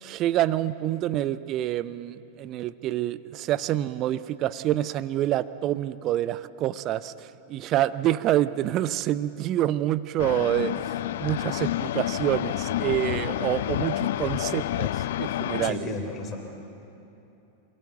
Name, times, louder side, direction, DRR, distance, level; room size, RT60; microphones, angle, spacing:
voice 1, 0.0-10.7 11.2-14.9 15.2-15.8, right 13 dB, 35° right, 17 dB, 0.7 m, -27 dB
sound 1, 10.2-15.7, left 13 dB, 55° left, 0.5 m, -29 dB
voice 2, 15.6-16.4, left 3 dB, 30° left, 3 dB, 3.3 m, -33 dB
28.0 x 17.5 x 8.0 m, 2.9 s
figure-of-eight pair, 90°, 0 cm